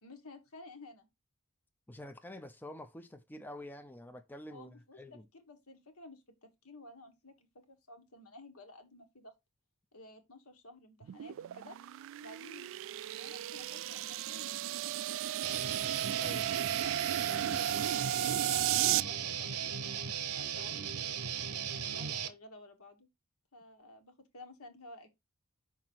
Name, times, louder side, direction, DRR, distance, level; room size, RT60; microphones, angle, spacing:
voice 1, 0.0-1.1 4.5-9.3 9.9-11.8 12.2-15.2 16.6-21.4 21.8-23.1 23.5-25.1, left 2 dB, 70° left, 1.6 m, -53 dB
voice 2, 1.9-5.2 16.2-16.5, left 1 dB, 10° left, 0.5 m, -47 dB
sound 1, 11.0-19.0, right 12 dB, 60° right, 0.3 m, -34 dB
Guitar, 15.4-22.3, right 8 dB, 90° right, 0.9 m, -37 dB
5.9 x 4.8 x 4.5 m
head